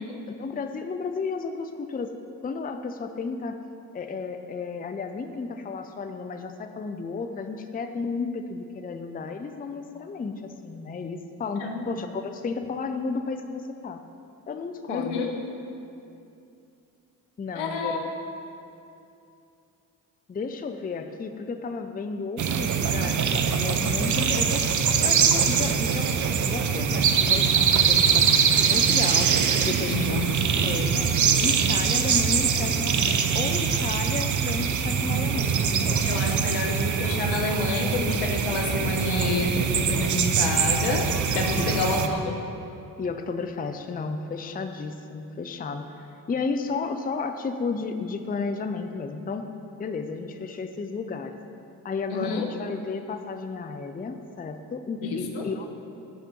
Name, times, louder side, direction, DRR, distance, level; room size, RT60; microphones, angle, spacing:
voice 1, 0.4-2.1 2.4-3.6 3.9-14.0 14.5-15.2 17.4-18.1 20.3-24.7 25.0-26.1 26.4-29.3 29.6-30.2 30.6-31.1 31.4-36.2 41.6-42.2 43.0-45.9 46.3-49.4 49.8-51.4 51.8-55.8, left 4 dB, 20° left, 7 dB, 0.6 m, -33 dB
voice 2, 11.6-11.9 14.9-15.3 17.5-18.0 29.9-30.4 36.0-42.3 52.1-52.5 55.0-55.5, left 3 dB, 75° left, 3 dB, 1.1 m, -29 dB
sound 1, 22.4-42.1, right 7 dB, 40° right, 0.7 m, -23 dB
10.0 x 5.1 x 5.9 m, 2.7 s
hypercardioid pair, 40°, 47 cm